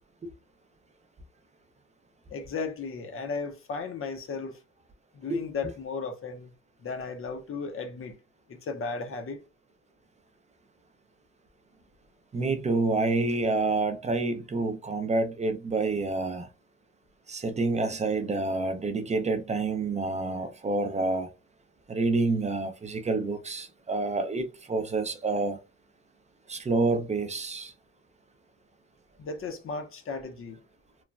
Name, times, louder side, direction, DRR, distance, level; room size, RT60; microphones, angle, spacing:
voice 1, 2.3-4.6 5.1-6.5 6.8-8.1 8.5-9.4 29.2-30.6, left 4 dB, 45° left, 0.7 m, -35 dB
voice 2, 12.3-16.5 17.3-21.3 21.9-25.6 26.5-27.7, right 3 dB, 25° right, 0.5 m, -28 dB
3.1 x 2.1 x 2.4 m
cardioid pair, 90°, 30 cm